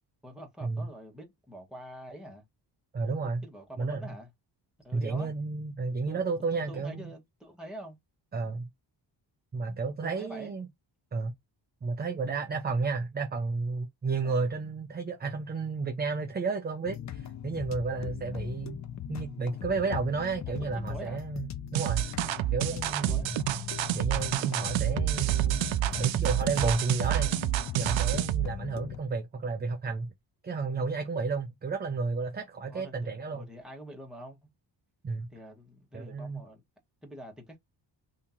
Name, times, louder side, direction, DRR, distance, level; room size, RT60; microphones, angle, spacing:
voice 1, 0.2-2.4 3.4-4.3 4.8-5.3 6.1-8.0 10.0-10.5 14.2-14.5 18.3-18.4 20.6-21.2 22.6-22.8 23.1-23.3 25.9-26.1 32.7-34.5 35.3-36.6 37.0-37.6, right 1 dB, ahead, 1.1 m, -46 dB
voice 2, 2.9-3.4 3.8-4.1 4.9-7.1 8.3-8.7 9.5-10.7 11.1-11.3 11.8-18.8 19.1-22.0 22.5-23.4 23.9-25.7 26.0-27.3 27.8-30.1 30.4-33.4 35.0-35.3 35.9-36.4, right 4 dB, 25° right, 0.4 m, -32 dB
sound 1, 16.8-29.0, left 9 dB, 40° left, 0.4 m, -39 dB
sound 2, 21.7-28.5, right 14 dB, 85° right, 0.5 m, -28 dB
2.8 x 2.8 x 3.6 m
wide cardioid pair, 150°, 45 cm